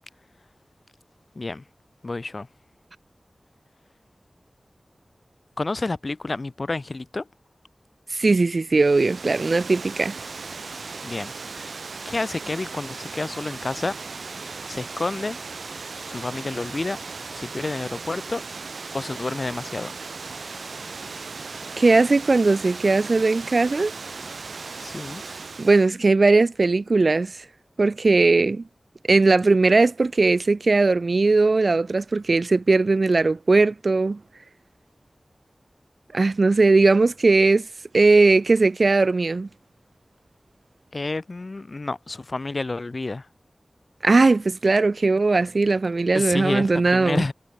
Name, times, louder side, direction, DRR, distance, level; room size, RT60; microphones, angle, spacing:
voice 1, 2.0-2.5 5.6-7.3 11.0-11.7 12.0-13.9 14.7-15.4 16.1-17.0 17.3-18.4 18.9-19.9 24.8-25.2 40.9-43.3 46.1-47.3, left 3 dB, 55° left, 6.6 m, -29 dB
voice 2, 8.1-10.2 21.8-23.9 25.6-27.4 27.8-28.6 29.1-34.2 36.1-37.7 37.9-39.5 44.0-47.2, right 3 dB, 65° right, 2.1 m, -19 dB
Water, 8.7-25.9, right 4 dB, 85° right, 5.6 m, -37 dB
cardioid pair, 45°, 0 cm